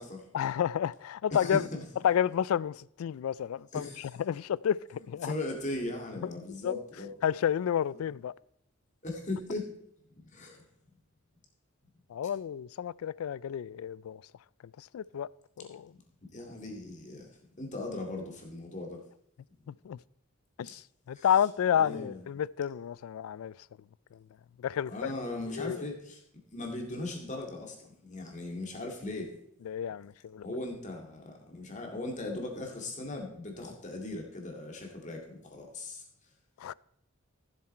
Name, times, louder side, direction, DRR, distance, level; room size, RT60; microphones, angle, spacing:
voice 1, 0.3-1.7 2.0-3.9 4.3-5.3 6.4-6.8 7.2-8.3 12.1-14.2 14.9-15.3 15.6-15.9 19.8-20.0 20.6-20.8 21.1-23.5 24.6-25.1 25.5-25.8 29.7-30.5 36.6-36.7, left 9 dB, 85° left, 0.3 m, -30 dB
voice 2, 1.3-1.8 3.7-4.1 5.0-7.1 7.9-8.1 9.0-9.7 10.2-10.6 16.3-17.3 17.6-19.0 20.6-20.7 21.1-21.3 21.7-22.2 24.9-26.2 26.5-29.3 30.4-36.0, left 2 dB, 35° left, 2.2 m, -38 dB
14.5 x 7.6 x 4.3 m
head